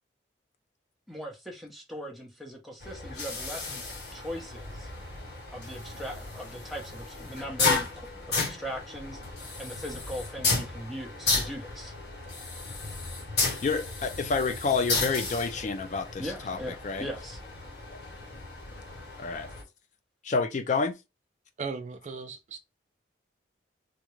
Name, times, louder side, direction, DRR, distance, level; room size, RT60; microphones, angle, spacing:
voice 1, 1.1-3.8 4.1-4.9 5.5-9.2 9.6-11.9 16.2-17.4, equal, ahead, 0.7 m, -39 dB
sound 1, 2.8-19.6, left 3 dB, 60° left, 1.2 m, -33 dB
voice 2, 13.6-16.6 16.8-17.1 19.2-19.5 20.2-21.0, left 4 dB, 40° left, 0.3 m, -28 dB
voice 3, 21.6-22.6, right 4 dB, 40° right, 0.3 m, -37 dB
3.6 x 2.1 x 3.0 m
head